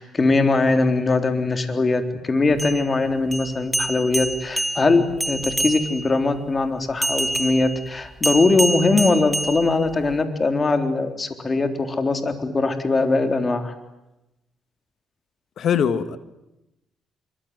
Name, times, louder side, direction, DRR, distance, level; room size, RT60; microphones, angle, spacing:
voice 1, 0.0-13.7, left 3 dB, 30° left, 3.8 m, -21 dB
sound 1, 2.5-6.2 7.0-10.2, right 1 dB, 5° right, 1.4 m, -27 dB
voice 2, 15.6-16.2, left 8 dB, 65° left, 1.9 m, -21 dB
25.5 x 24.0 x 9.7 m
cardioid pair, 90°, 0 cm